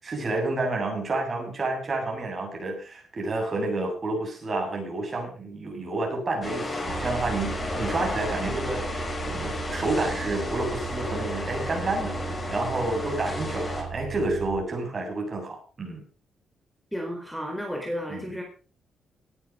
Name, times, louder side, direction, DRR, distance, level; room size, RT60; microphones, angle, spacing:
voice 1, 0.0-12.2 12.5-16.0 18.1-18.3, right 2 dB, 35° right, 1 dB, 7.7 m, -30 dB
sound 1, 6.4-13.8, left 2 dB, 25° left, 6.2 m, -33 dB
sound 2, 6.9-14.6, right 7 dB, 80° right, 4.8 m, -37 dB
voice 2, 16.9-18.4, equal, ahead, 1 dB, 4.1 m, -32 dB
18.5 x 10.0 x 5.2 m, 0.38 s
cardioid pair, 125°, 0 cm